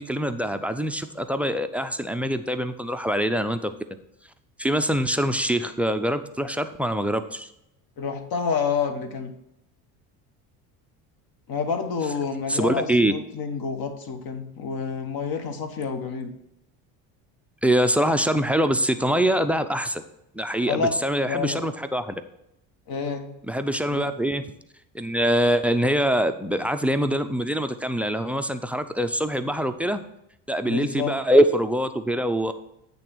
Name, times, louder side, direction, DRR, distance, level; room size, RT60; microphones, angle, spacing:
voice 1, 0.0-3.7 4.6-7.5 12.5-13.1 17.6-20.0 20.3-22.1 23.5-24.4 24.9-30.0 30.5-32.5, right 1 dB, 5° right, 11 dB, 0.4 m, -24 dB
voice 2, 8.0-9.3 11.5-16.3 20.7-20.9 21.2-21.6 22.9-23.3 23.9-24.1 30.7-31.2, left 5 dB, 55° left, 7 dB, 1.2 m, -28 dB
8.4 x 3.6 x 6.1 m, 0.82 s
supercardioid pair, 75°, 44 cm